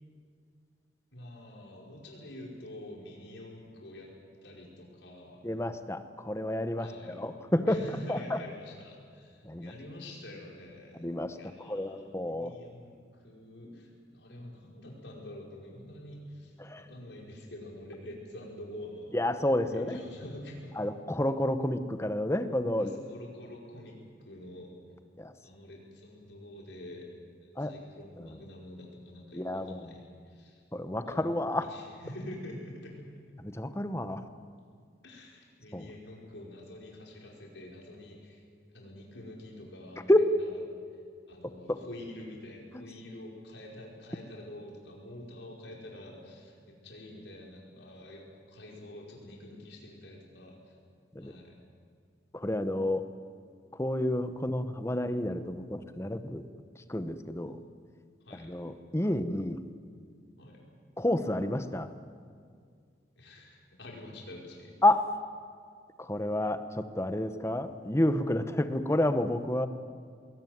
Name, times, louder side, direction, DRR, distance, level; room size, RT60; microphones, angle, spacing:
voice 1, 1.1-4.1 4.4-5.4 6.8-7.2 7.7-11.0 11.4-13.0 13.2-19.2 19.7-20.9 22.8-24.0 24.2-24.7 25.4-27.1 27.4-30.6 30.9-33.0 35.0-38.4 38.7-40.5 41.3-50.8 51.2-51.6 58.3-58.5 60.4-60.7 63.2-64.7, left 1 dB, 80° left, -1 dB, 5.2 m, -46 dB
voice 2, 5.4-7.8 8.1-8.4 9.4-9.7 10.9-12.6 16.6-16.9 19.1-20.0 20.8-23.0 25.2-25.3 27.6-27.8 28.2-28.3 29.3-29.9 30.7-31.7 33.4-34.3 35.7-35.9 40.1-40.3 41.7-41.8 42.7-42.8 51.1-51.3 52.3-53.0 53.7-56.4 56.8-57.6 58.3-59.7 61.0-61.9 64.8-65.1 66.0-69.7, left 1 dB, 15° left, 10 dB, 1.0 m, -30 dB
21.5 x 18.5 x 9.4 m, 2.1 s
head